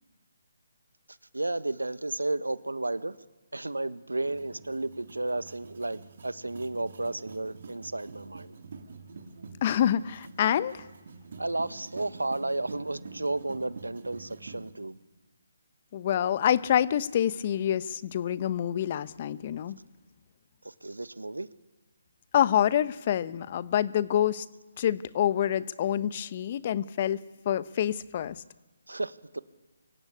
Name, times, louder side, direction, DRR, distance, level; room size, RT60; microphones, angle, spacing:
voice 1, 1.3-3.2 3.5-8.5 11.4-15.0 20.6-21.5 28.9-29.4, right 2 dB, 85° right, 13 dB, 1.4 m, -33 dB
sound 1, 4.2-14.7, right 4 dB, 55° right, 2.7 m, -47 dB
voice 2, 9.6-10.9 15.9-19.8 22.3-24.4 24.8-28.4, left 10 dB, 35° left, 16 dB, 1.0 m, -27 dB
24.5 x 24.5 x 8.6 m, 1.2 s
figure-of-eight pair, 150°, 0 cm